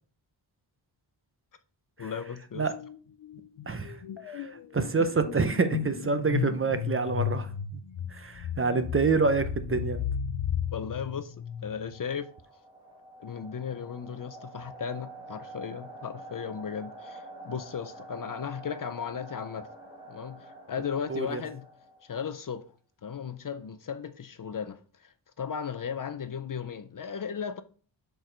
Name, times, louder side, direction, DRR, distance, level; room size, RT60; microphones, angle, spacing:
voice 1, 2.0-2.7 10.7-11.4 11.6-12.3 13.2-19.7 20.1-21.7 22.1-22.7 23.0-27.6, left 7 dB, 45° left, 0.5 m, -36 dB
sound 1, 2.6-3.0 3.2-12.0, left 8 dB, 85° left, 0.7 m, -34 dB
voice 2, 3.7-4.0 4.3-7.5 8.1-10.0 21.1-21.4, right 4 dB, 30° right, 0.6 m, -27 dB
sound 2, 11.5-22.3, right 2 dB, 10° right, 1.8 m, -47 dB
6.3 x 4.6 x 3.9 m
wide cardioid pair, 170°, 45 cm